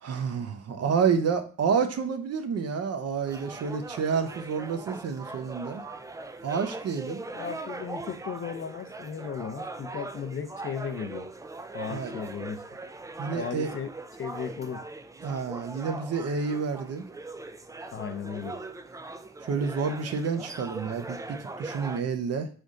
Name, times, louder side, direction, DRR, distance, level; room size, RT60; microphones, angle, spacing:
voice 1, 0.0-5.8 6.4-7.2 11.9-12.1 13.2-13.7 15.2-17.0 19.5-22.5, right 6 dB, 55° right, 7 dB, 0.8 m, -29 dB
sound 1, 3.3-22.0, right 3 dB, 10° right, 0.4 m, -40 dB
voice 2, 7.3-11.3 11.7-12.6 13.3-13.9 14.2-14.8 17.9-18.6, left 7 dB, 40° left, 10 dB, 0.6 m, -36 dB
4.0 x 3.5 x 3.7 m, 0.40 s
cardioid pair, 90°, 30 cm